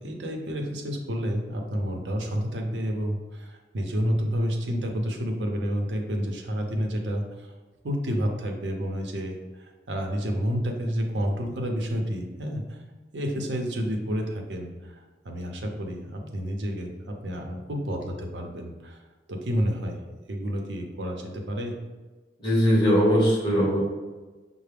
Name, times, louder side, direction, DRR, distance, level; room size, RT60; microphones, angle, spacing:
voice 1, 0.0-7.5 7.8-12.6 13.1-19.0 19.3-20.0 20.3-21.7, equal, 75° right, 2 dB, 0.7 m, -30 dB
voice 2, 22.4-23.8, equal, 25° left, -5 dB, 1.4 m, -20 dB
5.7 x 2.0 x 3.4 m, 1.3 s
head